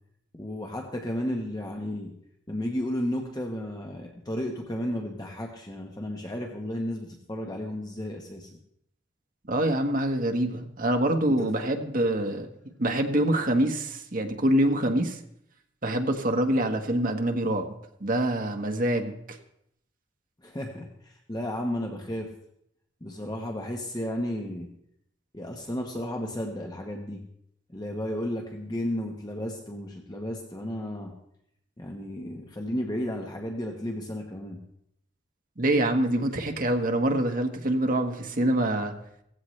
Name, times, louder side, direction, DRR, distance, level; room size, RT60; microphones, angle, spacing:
voice 1, 0.3-2.1 2.5-8.5 11.3-11.7 12.3-12.4 20.4-22.3 23.0-24.7 25.3-27.2 27.7-31.1 31.8-34.6, left 1 dB, 20° left, 1 dB, 1.2 m, -33 dB
voice 2, 9.5-12.5 12.8-15.2 15.8-17.7 18.0-19.4 35.6-38.9, right 1 dB, 45° right, 4 dB, 1.4 m, -25 dB
17.0 x 15.5 x 3.3 m, 0.74 s
head